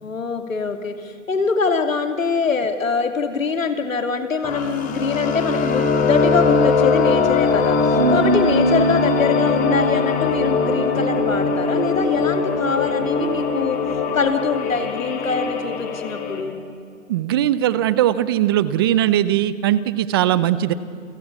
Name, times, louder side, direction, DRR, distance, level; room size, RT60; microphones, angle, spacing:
voice 1, 0.0-7.8 8.1-13.8 14.1-16.6, left 5 dB, 80° left, 7 dB, 3.0 m, -23 dB
sound 1, 4.4-16.4, left 4 dB, 20° left, 2.9 m, -21 dB
Bass guitar, 7.9-14.2, equal, 70° right, 7.7 m, -26 dB
voice 2, 17.1-20.7, right 12 dB, 20° right, 16 dB, 0.5 m, -19 dB
28.5 x 16.5 x 8.4 m, 2.3 s
hypercardioid pair, 135°, 40 cm